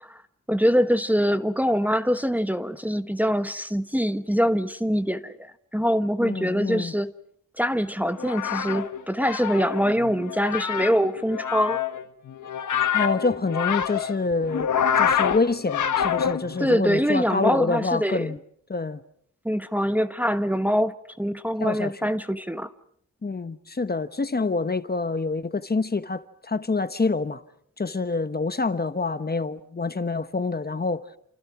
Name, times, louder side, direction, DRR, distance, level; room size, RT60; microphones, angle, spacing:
voice 1, 0.5-7.1 7.6-11.8 16.6-18.3 19.4-22.7, equal, 5° right, 1.1 m, -24 dB
voice 2, 6.2-6.9 12.9-14.7 14.9-18.4 18.7-19.0 21.6-22.1 23.2-27.4 27.8-31.0, left 3 dB, 30° left, 1.2 m, -27 dB
sound 1, 8.1-16.7, left 8 dB, 85° left, 1.4 m, -26 dB
29.5 x 28.5 x 6.0 m
cardioid pair, 80°, 29 cm